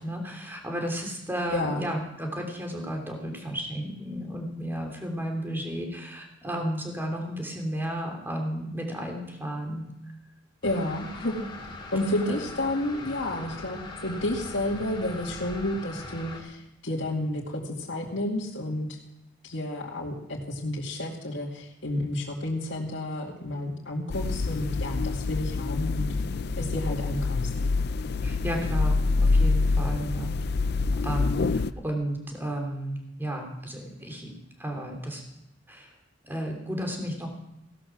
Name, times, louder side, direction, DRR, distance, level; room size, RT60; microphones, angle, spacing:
voice 1, 0.0-9.9 12.3-12.4 28.2-30.3 30.9-34.3 34.6-35.2 35.7-35.9 36.2-37.3, equal, 10° right, 1 dB, 3.1 m, -33 dB
voice 2, 1.5-1.8 10.6-11.4 11.9-19.0 19.4-26.1 26.6-27.5, left 1 dB, 75° left, -4 dB, 2.3 m, -31 dB
sound 1, 10.6-16.4, left 2 dB, 25° left, 2.6 m, -41 dB
sound 2, 24.1-31.7, left 3 dB, 60° left, 0.5 m, -26 dB
17.0 x 12.0 x 6.2 m, 0.84 s
head